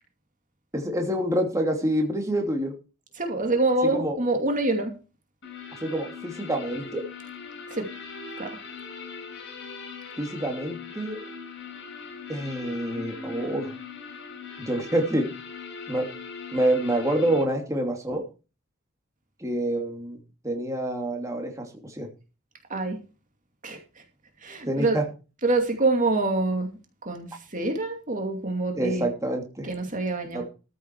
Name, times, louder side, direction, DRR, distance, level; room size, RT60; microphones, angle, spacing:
voice 1, 0.7-2.7 3.9-4.2 5.8-7.0 10.2-11.2 12.3-13.7 14.6-15.3 15.9-16.1 16.5-18.2 19.4-20.2 20.4-22.1 24.7-25.0 28.7-29.7 30.3-30.4, right 1 dB, 15° right, 2 dB, 2.8 m, -27 dB
voice 2, 3.2-4.9 7.7-7.9 8.4-8.6 22.7-23.0 23.6-24.0 24.4-25.0 25.4-26.7 27.0-29.1 29.6-30.4, right 2 dB, 40° right, 4 dB, 2.5 m, -26 dB
sound 1, 5.4-17.4, left 4 dB, 60° left, 7.0 m, -40 dB
14.0 x 7.9 x 4.7 m, 0.32 s
head